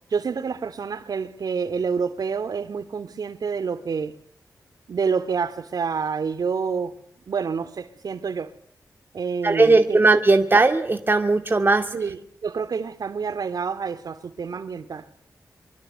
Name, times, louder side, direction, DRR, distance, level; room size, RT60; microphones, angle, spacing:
voice 1, 0.1-4.1 4.9-6.9 7.3-8.5 9.1-10.0 11.9-15.1, right 5 dB, 75° right, 3.0 m, -28 dB
voice 2, 9.4-11.8, right 3 dB, 30° right, 2.3 m, -18 dB
24.5 x 24.0 x 9.3 m
wide cardioid pair, 90°, 7 cm